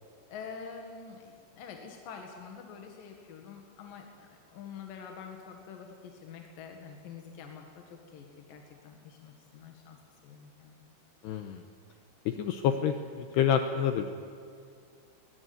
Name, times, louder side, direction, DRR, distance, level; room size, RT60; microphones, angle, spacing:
voice 1, 0.3-10.9, left 6 dB, 60° left, 2 dB, 2.7 m, -47 dB
voice 2, 11.2-11.6 12.3-14.1, left 8 dB, 85° left, 7 dB, 2.4 m, -28 dB
21.0 x 20.5 x 9.6 m, 2.4 s
omnidirectional pair, 5.9 m